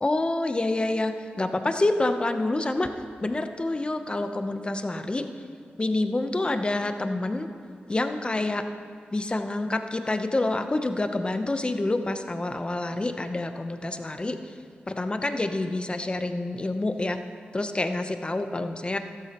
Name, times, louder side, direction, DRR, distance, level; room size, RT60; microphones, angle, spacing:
voice 1, 0.0-2.9 3.2-5.3 5.8-7.5 7.9-8.7 9.1-14.4 14.9-17.2 17.5-19.0, left 2 dB, 25° left, 7 dB, 0.7 m, -27 dB
14.0 x 12.5 x 3.0 m, 2.3 s
wide cardioid pair, 80°, 4 cm